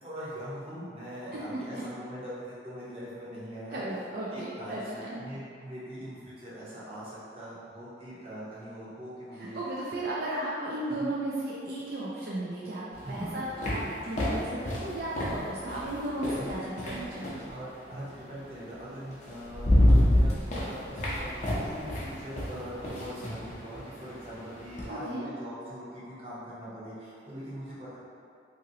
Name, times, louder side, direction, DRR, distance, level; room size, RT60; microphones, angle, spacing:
voice 1, 0.0-3.8 4.3-9.6 10.0-10.1 10.9-11.1 13.0-13.4 16.4-16.5 17.4-28.0, equal, 30° right, -9 dB, 0.8 m, -42 dB
voice 2, 3.7-5.2 9.4-17.4 24.9-25.3, right 1 dB, 50° right, -7 dB, 0.4 m, -35 dB
sound 1, 12.9-17.5 18.8-18.9 19.3-24.9, left 1 dB, 40° left, 0.5 m, -28 dB
2.9 x 2.6 x 2.7 m, 2.3 s
head